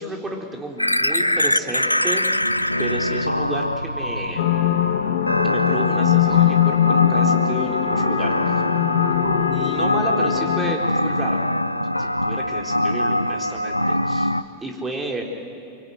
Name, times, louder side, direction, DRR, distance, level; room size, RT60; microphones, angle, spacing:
voice 1, 0.0-2.2 2.8-4.5 5.4-8.3 9.5-11.4 12.0-14.3 14.6-15.2, right 2 dB, 15° right, 1 dB, 4.1 m, -32 dB
sound 1, 0.8-14.4, left 1 dB, 85° left, 0.6 m, -23 dB
sound 2, 4.4-10.8, left 13 dB, 55° left, 1.1 m, -21 dB
24.5 x 24.5 x 9.3 m, 2.4 s
figure-of-eight pair, 90°, 0 cm